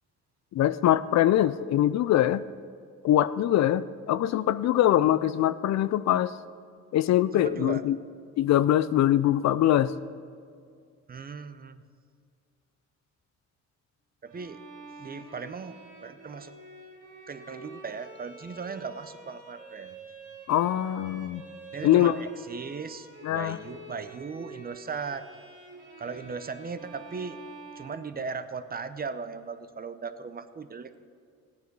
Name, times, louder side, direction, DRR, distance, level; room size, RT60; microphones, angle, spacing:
voice 1, 0.5-2.4 3.0-6.3 6.9-8.0 8.4-9.9 20.5-21.4 21.8-22.2 23.2-23.6, left 12 dB, 65° left, 15 dB, 0.5 m, -23 dB
voice 2, 7.3-7.8 11.1-11.8 14.2-14.6 15.0-16.5 17.3-20.0 21.7-25.3 26.0-27.4 27.7-31.0, right 5 dB, 30° right, 10 dB, 0.7 m, -38 dB
Bowed string instrument, 14.3-28.6, right 3 dB, 85° right, 2.9 m, -47 dB
15.5 x 9.5 x 4.7 m, 2.2 s
cardioid pair, 90°, 30 cm